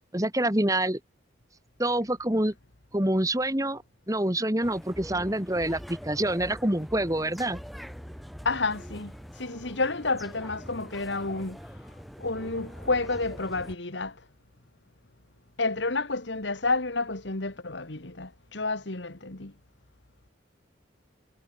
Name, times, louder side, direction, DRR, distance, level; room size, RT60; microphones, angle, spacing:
voice 1, 0.1-1.0 1.8-2.5 2.9-7.6, right 1 dB, 15° right, 2.2 m, -26 dB
sound 1, 4.6-13.8, equal, ahead, 3.0 m, -43 dB
voice 2, 8.4-11.6 12.2-14.3 15.6-19.5, left 3 dB, 70° left, 2.0 m, -30 dB
head